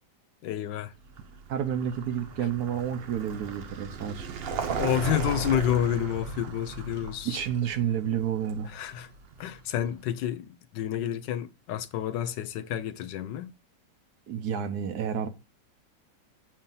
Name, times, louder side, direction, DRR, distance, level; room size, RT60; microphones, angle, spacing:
voice 1, 0.4-0.9 4.8-7.4 8.7-9.1 9.4-13.5, left 10 dB, 85° left, 1.3 m, -29 dB
Vehicle, 1.0-9.8, right 5 dB, 85° right, 0.5 m, -37 dB
voice 2, 1.5-4.3 7.2-8.7 14.3-15.3, right 9 dB, 70° right, 1.2 m, -30 dB
7.3 x 2.8 x 5.3 m
omnidirectional pair, 1.9 m